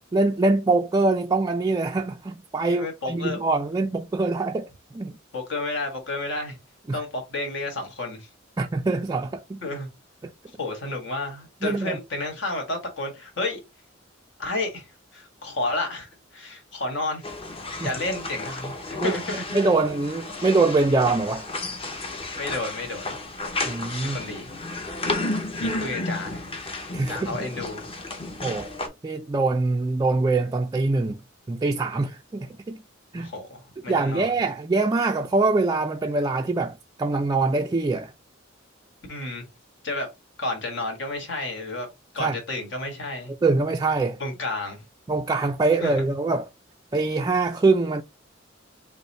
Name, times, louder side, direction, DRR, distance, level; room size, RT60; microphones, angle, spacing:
voice 1, 0.1-5.1 6.9-7.0 8.6-9.6 11.6-12.0 17.8-17.9 19.0-21.5 23.7-24.2 26.9-27.4 28.4-28.7 29.0-31.2 31.5-32.8 33.1-33.3 33.9-38.1 42.2-42.4 43.4-44.2 45.1-46.5 46.9-48.0, right 3 dB, 20° right, 0.3 m, -24 dB
voice 2, 2.7-3.5 5.3-6.6 6.9-8.3 9.6-9.9 10.6-13.6 14.4-17.3 17.8-19.4 22.3-23.1 24.0-24.5 25.5-26.5 27.1-27.8 33.2-34.4 39.1-39.4 39.8-40.1 40.4-41.9 42.1-43.3 44.2-44.8 45.8-46.0, left 2 dB, 65° left, 1.7 m, -31 dB
sound 1, 17.2-28.9, left 2 dB, 30° left, 0.9 m, -32 dB
5.4 x 2.1 x 4.1 m
head